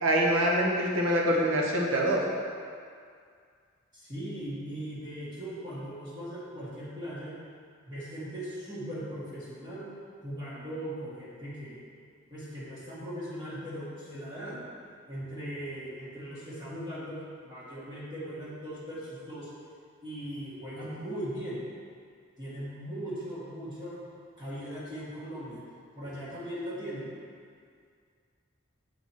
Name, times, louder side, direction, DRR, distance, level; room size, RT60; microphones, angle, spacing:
voice 1, 0.0-2.2, equal, 70° right, -3 dB, 1.2 m, -25 dB
voice 2, 3.9-7.3 7.9-9.9 10.2-11.8 12.3-14.6 15.1-19.5 20.0-21.6 22.4-24.0 24.4-25.6 25.9-27.1, equal, 20° right, -11 dB, 1.7 m, -39 dB
7.7 x 4.7 x 4.5 m, 2.2 s
head